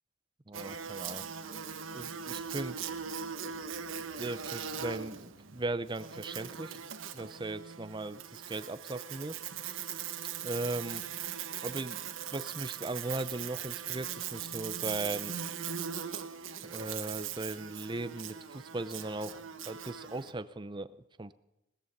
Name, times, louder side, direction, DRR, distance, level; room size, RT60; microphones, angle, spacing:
voice 1, 0.5-1.2 1.9-2.8 4.2-6.8 7.1-9.4 10.4-11.0 11.6-15.4 16.6-21.3, right 2 dB, 25° right, 14 dB, 0.6 m, -38 dB
Buzz, 0.5-20.3, right 8 dB, 80° right, 1.3 m, -40 dB
18.5 x 14.0 x 5.3 m, 0.91 s
head